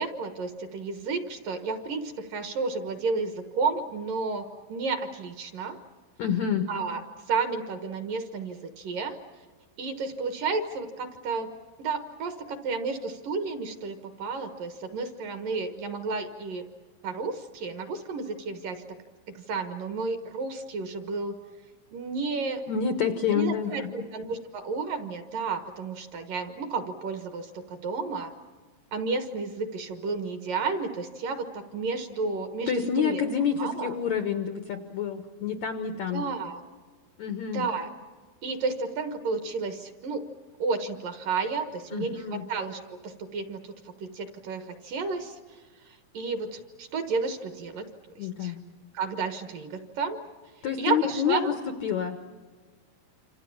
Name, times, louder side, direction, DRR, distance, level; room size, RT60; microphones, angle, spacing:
voice 1, 0.0-5.8 6.7-7.0 7.3-9.2 9.8-11.5 11.8-16.6 17.0-18.8 19.3-21.4 21.9-22.6 23.3-28.3 28.9-33.2 33.6-33.9 36.1-36.6 37.5-37.9 38.4-40.3 40.6-45.4 45.8-48.5 48.9-50.2 50.8-51.5, right 4 dB, 65° right, 8 dB, 2.4 m, -32 dB
voice 2, 6.2-6.7 22.7-24.0 32.7-36.2 37.2-37.6 41.9-42.4 48.2-48.6 50.6-51.5 51.8-52.2, left 7 dB, 85° left, 8 dB, 1.6 m, -28 dB
28.0 x 26.5 x 7.2 m, 1.5 s
omnidirectional pair, 5.2 m